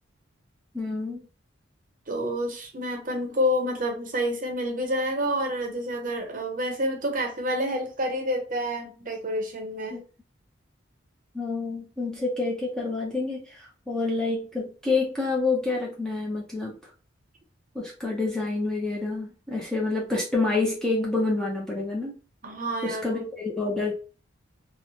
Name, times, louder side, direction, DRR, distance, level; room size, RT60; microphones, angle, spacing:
voice 1, 0.7-1.2 9.9-10.0 11.3-16.8 17.7-22.2 22.8-23.9, left 3 dB, 5° left, -4 dB, 0.4 m, -28 dB
voice 2, 2.1-10.0 22.4-23.2, equal, 40° right, 3 dB, 0.6 m, -28 dB
2.9 x 2.0 x 2.7 m, 0.36 s
head